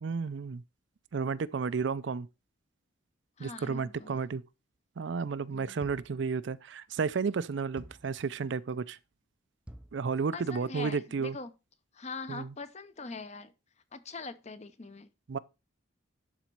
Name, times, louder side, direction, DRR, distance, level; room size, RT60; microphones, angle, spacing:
voice 1, 0.0-0.6 1.1-2.3 3.4-4.4 5.0-9.0 9.9-11.4 12.3-12.5 15.3-15.4, right 5 dB, 65° right, 0.4 m, -32 dB
voice 2, 3.4-4.2 5.5-5.8 10.3-11.5 11.9-13.5 13.9-15.1, left 3 dB, 35° left, 0.7 m, -42 dB
sound 1, 5.8-6.2 7.8-8.2 9.7-10.0, equal, 5° right, 0.4 m, -49 dB
11.5 x 4.0 x 4.6 m
head